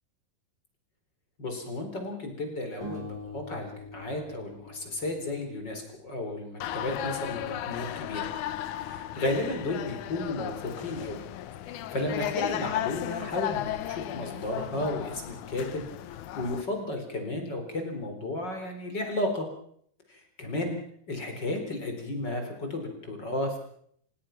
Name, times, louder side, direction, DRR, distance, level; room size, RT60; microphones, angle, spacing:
voice 1, 1.4-8.3 8.8-11.2 11.7-15.8 16.4-19.5 20.1-20.8 21.1-23.6, left 1 dB, 25° left, 5 dB, 4.5 m, -33 dB
sound 1, 2.8-6.0, left 2 dB, 5° left, 7.5 m, -44 dB
sound 2, 6.6-16.6, left 12 dB, 70° left, 1.9 m, -35 dB
29.0 x 17.0 x 5.9 m, 0.66 s
omnidirectional pair, 4.6 m